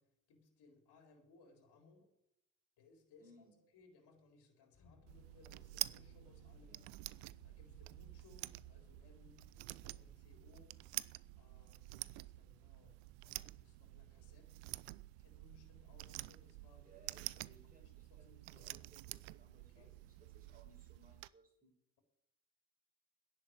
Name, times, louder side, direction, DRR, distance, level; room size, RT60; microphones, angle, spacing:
voice 1, 0.0-2.1 2.8-3.5 3.7-6.8 7.4-10.8 11.4-14.6 15.2-16.9 17.3-18.8 19.7-19.9, left 3 dB, 60° left, 4 dB, 4.0 m, -66 dB
voice 2, 3.2-3.6 6.6-6.8 16.8-21.7, right 2 dB, 20° right, 1 dB, 6.0 m, -65 dB
sound 1, 4.7-11.9, equal, 40° left, 3.9 m, -65 dB
sound 2, 5.1-21.3, right 21 dB, 75° right, 0.6 m, -49 dB
11.0 x 7.7 x 9.3 m, 0.80 s
hypercardioid pair, 70°, 45 cm